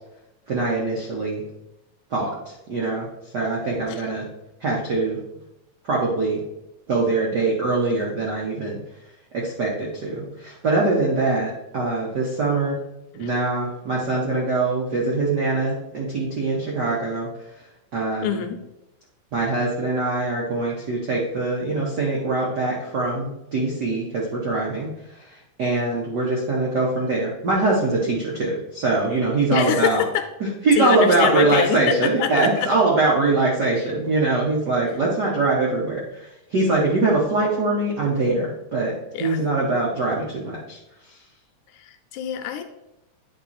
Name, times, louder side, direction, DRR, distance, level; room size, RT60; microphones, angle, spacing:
voice 1, 0.5-1.4 2.1-3.1 3.3-4.2 4.6-5.2 5.8-6.4 6.9-8.8 9.3-12.8 13.1-17.3 17.9-18.4 19.3-24.9 25.2-25.3 25.6-30.0 30.6-38.9 39.2-40.8, right 3 dB, 85° right, -4 dB, 0.9 m, -23 dB
voice 2, 18.2-18.6 29.5-30.3 30.8-32.7 39.1-39.4 41.7-42.6, left 9 dB, 80° left, 7 dB, 1.9 m, -25 dB
10.0 x 3.8 x 4.2 m, 0.91 s
omnidirectional pair, 3.8 m